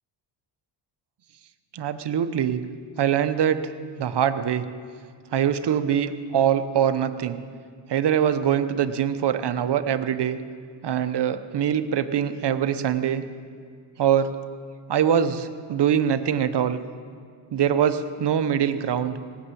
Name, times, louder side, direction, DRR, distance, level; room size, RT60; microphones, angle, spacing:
voice 1, 1.7-2.6 3.0-3.7 4.0-4.6 5.3-7.4 7.9-10.4 10.8-13.2 14.0-14.3 14.9-16.8 17.5-19.2, right 9 dB, 55° right, 10 dB, 1.0 m, -23 dB
18.0 x 6.9 x 8.5 m, 2.1 s
cardioid pair, 70°, 49 cm